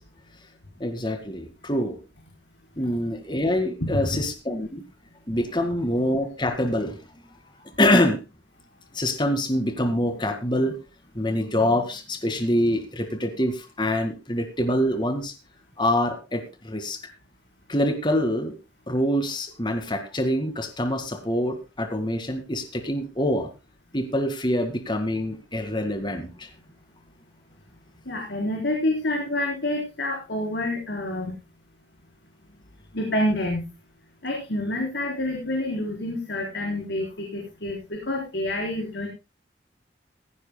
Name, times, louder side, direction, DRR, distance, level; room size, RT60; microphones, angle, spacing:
voice 1, 0.8-2.0 2.8-4.8 5.3-7.0 7.8-8.2 8.9-10.7 11.2-15.3 15.8-17.0 17.7-18.5 18.9-23.5 23.9-26.5, left 1 dB, 25° left, 7 dB, 1.9 m, -25 dB
voice 2, 28.1-31.4 32.9-33.6 34.2-39.1, left 1 dB, 65° left, 0 dB, 4.1 m, -28 dB
16.5 x 16.0 x 2.2 m, 0.28 s
head